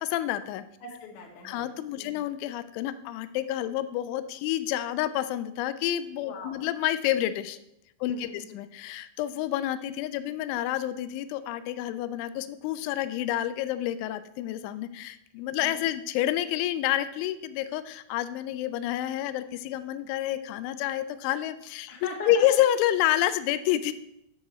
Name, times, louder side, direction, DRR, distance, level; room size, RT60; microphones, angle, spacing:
voice 1, 0.0-0.6 1.4-7.6 8.0-21.9 22.3-23.9, left 12 dB, 85° left, 12 dB, 2.8 m, -29 dB
voice 2, 0.8-2.2 6.2-6.7 8.0-8.6 15.6-15.8 21.9-22.6, left 4 dB, 60° left, -1 dB, 3.1 m, -41 dB
10.5 x 6.7 x 4.3 m, 0.82 s
omnidirectional pair, 5.8 m